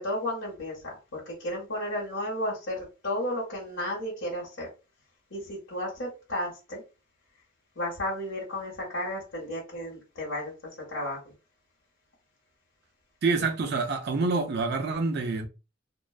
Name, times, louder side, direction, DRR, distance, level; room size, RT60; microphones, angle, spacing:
voice 1, 0.0-4.7 5.3-6.8 7.8-10.5 10.9-11.3, left 1 dB, 85° left, 1.1 m, -33 dB
voice 2, 13.2-15.5, right 3 dB, 55° right, 0.4 m, -27 dB
2.4 x 2.2 x 2.3 m
head